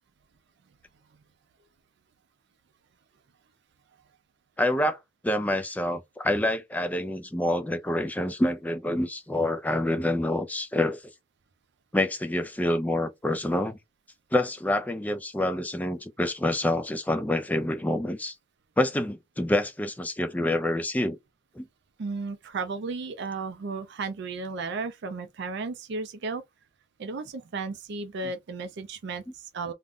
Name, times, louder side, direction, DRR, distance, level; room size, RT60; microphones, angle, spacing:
voice 1, 4.6-5.0 5.2-11.0 11.9-13.8 14.3-18.3 18.8-21.2 21.6-21.7, left 1 dB, 10° left, 0.4 m, -27 dB
voice 2, 22.0-26.4 27.0-29.7, right 4 dB, 60° right, 0.4 m, -34 dB
2.5 x 2.1 x 3.5 m
head